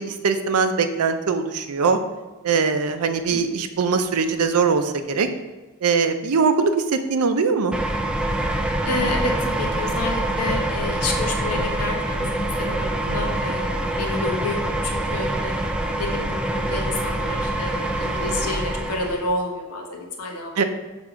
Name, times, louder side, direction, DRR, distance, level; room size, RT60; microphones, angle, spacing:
voice 1, 0.0-2.0 2.4-5.3 5.8-7.8 13.1-13.5 20.6-20.7, right 5 dB, 75° right, 8 dB, 0.5 m, -21 dB
voice 2, 3.3-3.6 8.8-16.3 16.5-20.6, left 2 dB, 90° left, 0 dB, 1.1 m, -30 dB
sound 1, 7.7-19.3, right 1 dB, 5° right, 0.4 m, -25 dB
5.9 x 3.5 x 4.9 m, 1.2 s
head